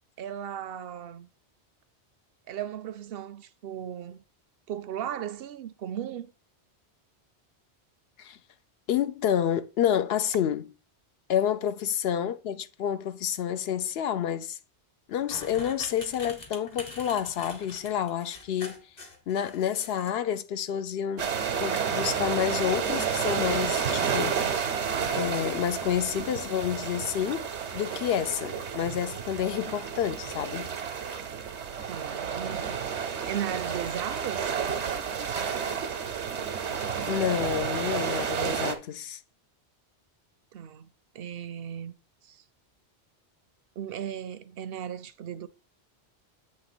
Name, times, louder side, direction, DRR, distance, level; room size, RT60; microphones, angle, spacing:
voice 1, 0.2-1.3 2.5-4.2 4.7-6.3 31.9-34.6 40.5-41.9 42.2-42.4 43.8-45.5, right 9 dB, 65° right, 0.7 m, -36 dB
voice 2, 8.9-10.7 11.3-14.6 15.1-18.8 19.3-21.3 21.6-24.4 25.1-30.7 37.1-39.2, left 9 dB, 70° left, 0.8 m, -29 dB
sound 1, 15.2-20.1, left 3 dB, 40° left, 1.2 m, -44 dB
sound 2, 21.2-38.7, right 7 dB, 90° right, 1.2 m, -31 dB
8.6 x 3.0 x 6.0 m
omnidirectional pair, 1.1 m